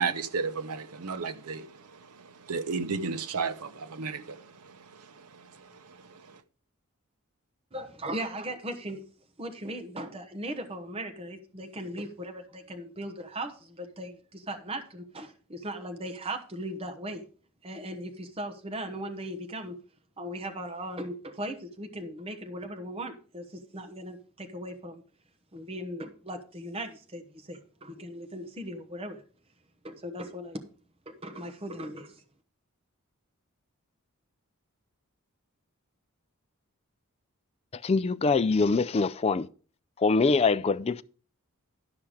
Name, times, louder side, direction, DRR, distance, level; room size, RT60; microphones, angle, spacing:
voice 1, 0.0-1.7 2.5-4.4, right 5 dB, 85° right, 0.8 m, -32 dB
voice 2, 7.7-9.0 9.4-17.2 17.6-19.8 20.2-25.0 25.5-29.2 29.8-30.6 31.1-32.2, right 1 dB, 25° right, 1.0 m, -38 dB
voice 3, 37.8-39.5 40.0-41.0, left 4 dB, 25° left, 0.3 m, -24 dB
12.0 x 5.8 x 4.9 m
head